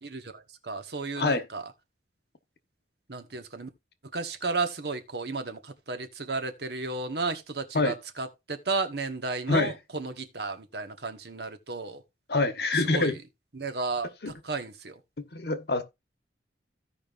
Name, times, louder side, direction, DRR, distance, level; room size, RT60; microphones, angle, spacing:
voice 1, 0.0-1.7 3.1-3.7 4.1-12.0 12.7-13.2 13.5-15.0, right 3 dB, 65° right, 1.3 m, -33 dB
voice 2, 12.3-13.2 14.2-14.3 15.2-15.8, left 3 dB, 60° left, 1.2 m, -25 dB
16.0 x 5.3 x 2.5 m
head